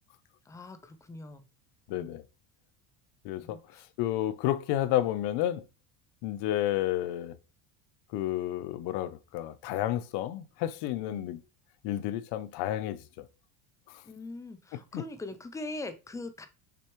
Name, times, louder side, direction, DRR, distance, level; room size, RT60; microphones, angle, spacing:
voice 1, 0.5-1.4 1.9-2.2 3.3-3.8 11.1-11.3 14.1-16.5, left 2 dB, 10° left, 0.3 m, -42 dB
voice 2, 1.9-2.2 3.2-3.6 4.0-5.6 6.2-7.3 8.1-11.4 11.8-13.3 13.9-14.0 14.7-15.0, left 13 dB, 60° left, 0.7 m, -31 dB
6.7 x 6.1 x 3.1 m
cardioid pair, 150°, 44 cm